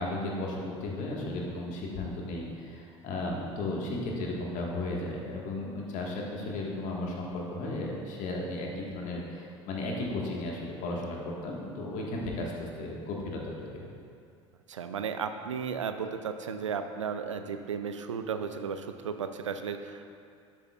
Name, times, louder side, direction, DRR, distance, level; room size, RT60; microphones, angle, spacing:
voice 1, 0.0-13.9, left 2 dB, 55° left, -2 dB, 1.6 m, -35 dB
voice 2, 14.7-20.1, right 6 dB, 85° right, 8 dB, 0.5 m, -34 dB
11.5 x 8.2 x 2.4 m, 2.3 s
figure-of-eight pair, 65°, 16 cm